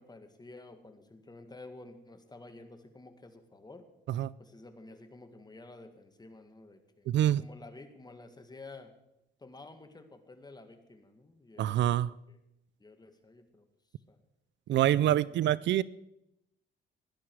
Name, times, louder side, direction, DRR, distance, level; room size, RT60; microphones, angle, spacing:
voice 1, 0.0-3.9 4.4-8.9 9.4-12.4 12.8-13.7 14.1-14.2 14.7-15.7, left 2 dB, 20° left, 1.9 m, -51 dB
voice 2, 7.1-7.4 11.6-12.1 14.7-15.8, right 12 dB, 65° right, 0.4 m, -26 dB
17.0 x 11.5 x 4.7 m
cardioid pair, 90°, 20 cm